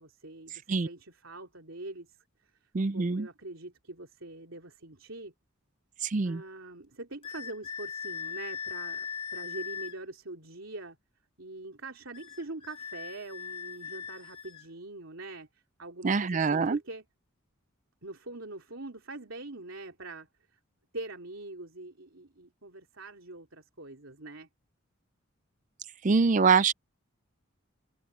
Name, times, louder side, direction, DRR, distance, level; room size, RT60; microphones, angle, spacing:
voice 1, 0.0-2.2 2.4-2.5 2.9-5.3 6.2-11.0 11.4-17.0 18.0-20.6 20.9-24.5, right 2 dB, 75° right, 3.3 m, -43 dB
voice 2, 2.7-3.3 6.0-6.4 16.0-16.8 26.0-26.7, right 5 dB, 35° right, 0.4 m, -24 dB
sound 1, 7.2-10.0 12.1-14.7, left 6 dB, 25° left, 2.1 m, -39 dB
head